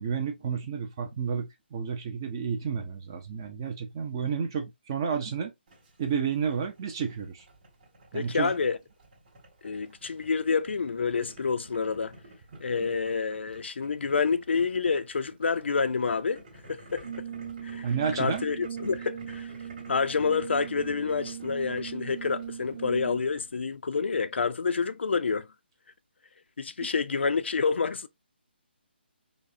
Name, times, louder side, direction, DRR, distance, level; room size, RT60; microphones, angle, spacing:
voice 1, 0.0-5.5 6.0-7.5 8.1-8.5 17.8-18.4, right 6 dB, 20° right, 0.4 m, -31 dB
Boiling, 5.7-23.8, right 1 dB, 35° right, 2.0 m, -52 dB
voice 2, 8.1-8.8 9.6-12.1 12.6-16.4 16.7-17.1 17.6-17.9 18.2-19.5 19.9-25.5 26.6-28.1, left 5 dB, 80° left, 0.4 m, -28 dB
Brass instrument, 17.0-23.4, right 8 dB, 75° right, 0.6 m, -39 dB
5.0 x 2.0 x 2.5 m
hypercardioid pair, 165°, 6 cm